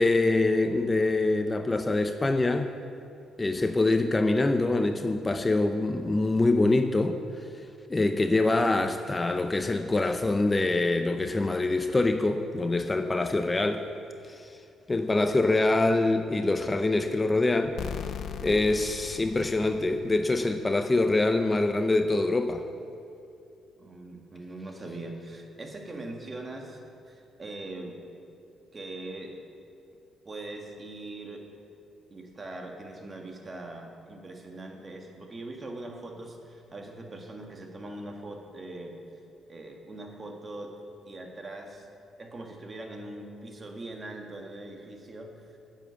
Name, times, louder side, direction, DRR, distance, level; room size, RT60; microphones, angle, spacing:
voice 1, 0.0-2.7 3.4-7.2 7.9-13.8 14.2-14.6 14.9-17.8 18.4-22.6, left 2 dB, 20° left, 7 dB, 0.6 m, -25 dB
sound 1, 17.8-20.5, left 8 dB, 65° left, 0.6 m, -38 dB
voice 2, 23.8-28.0 28.7-29.3 30.2-31.4 32.1-39.0 39.5-40.7 41.1-41.9 42.2-45.3, right 2 dB, 30° right, 2 dB, 1.6 m, -41 dB
10.0 x 7.4 x 7.0 m, 2.5 s
cardioid pair, 90°, 0 cm